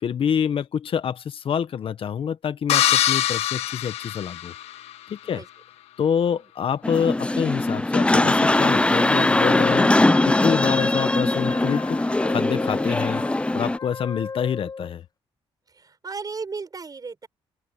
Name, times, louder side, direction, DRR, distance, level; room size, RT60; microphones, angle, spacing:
voice 1, 0.0-4.5 5.1-5.4 6.0-9.9 10.2-12.0 12.3-13.2 13.5-15.0, left 8 dB, 60° left, 1.5 m, -26 dB
sound 1, 2.7-4.9, left 12 dB, 85° left, 1.6 m, -23 dB
sound 2, 6.8-13.8, left 2 dB, 10° left, 0.6 m, -21 dB
Wind instrument woodwind instrument, 9.3-14.9, left 5 dB, 40° left, 1.4 m, -33 dB
voice 2, 15.7-17.3, right 4 dB, 35° right, 7.5 m, -35 dB
open air
cardioid pair, 75°, 10 cm